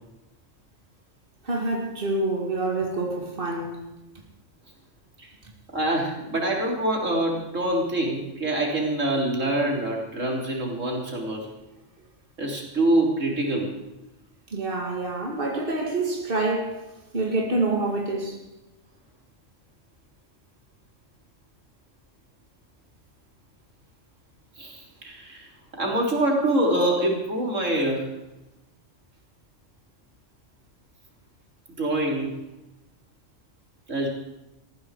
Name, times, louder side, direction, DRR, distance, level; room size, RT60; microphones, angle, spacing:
voice 1, 1.4-3.8 14.5-16.9 17.1-18.4, right 2 dB, 45° right, 2.6 m, -27 dB
voice 2, 5.7-11.4 12.4-13.7 24.6-25.5 25.8-28.1 31.8-32.3 33.9-34.1, right 1 dB, 90° right, 4.0 m, -25 dB
19.5 x 14.5 x 4.9 m
omnidirectional pair, 1.3 m